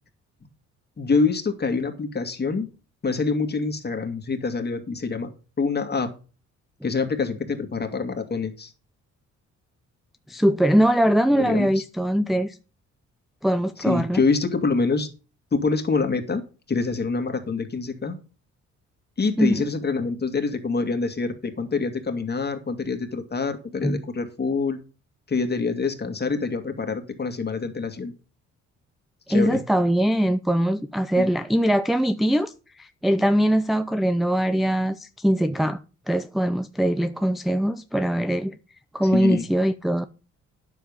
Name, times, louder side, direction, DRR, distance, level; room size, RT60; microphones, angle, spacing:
voice 1, 1.0-2.7 3.0-5.3 5.6-6.1 6.8-8.7 11.3-11.8 13.9-15.1 15.5-16.4 16.7-18.2 19.2-24.8 25.3-28.1 29.3-29.6 31.2-31.3 39.1-39.5, left 4 dB, 35° left, 2.2 m, -26 dB
voice 2, 10.3-12.6 13.4-14.2 19.4-19.7 23.8-24.0 29.3-35.8 36.1-38.5 38.9-40.1, equal, ahead, 0.5 m, -22 dB
9.9 x 7.2 x 5.5 m
cardioid pair, 90°, 30 cm